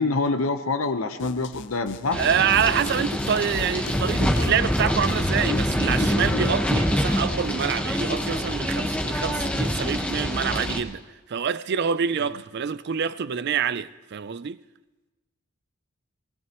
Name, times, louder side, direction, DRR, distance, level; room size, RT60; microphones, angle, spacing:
voice 1, 0.0-2.2, left 3 dB, 80° left, 1.0 m, -25 dB
sound 1, 1.2-6.5, left 5 dB, 55° left, 0.4 m, -36 dB
sound 2, 2.1-10.8, equal, 5° left, 1.2 m, -25 dB
voice 2, 2.1-11.0 11.3-14.6, right 7 dB, 50° right, 0.4 m, -26 dB
19.5 x 19.5 x 3.0 m
head